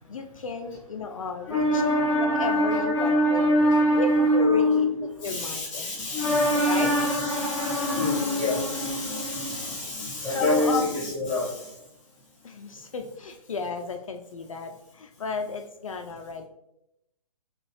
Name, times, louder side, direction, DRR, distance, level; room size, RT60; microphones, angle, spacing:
voice 1, 0.1-1.8 2.2-3.4 4.0-4.9 5.2-5.9 6.7-6.9 10.3-11.0 12.4-16.4, left 5 dB, 55° left, 4 dB, 0.4 m, -33 dB
voice 2, 1.5-11.8, equal, ahead, -10 dB, 0.5 m, -24 dB
6.1 x 2.4 x 3.1 m, 0.85 s
figure-of-eight pair, 130°, 20 cm